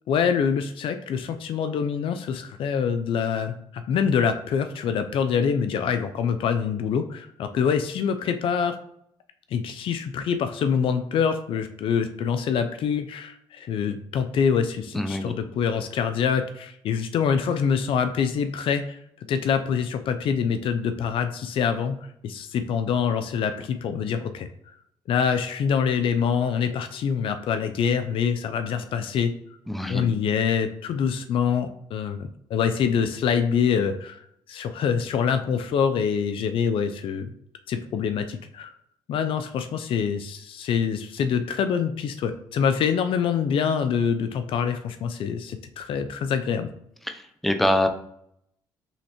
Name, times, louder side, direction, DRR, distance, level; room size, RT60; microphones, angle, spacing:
voice 1, 0.1-8.8 9.5-19.0 19.3-22.0 22.2-24.5 25.1-29.3 29.9-34.2 34.5-37.3 37.7-38.7 39.1-46.7, left 7 dB, 65° left, 8 dB, 0.4 m, -25 dB
voice 2, 14.9-15.3 29.7-30.1 47.1-47.9, left 1 dB, ahead, 6 dB, 0.6 m, -25 dB
5.7 x 3.1 x 2.9 m, 0.72 s
cardioid pair, 80°, 10 cm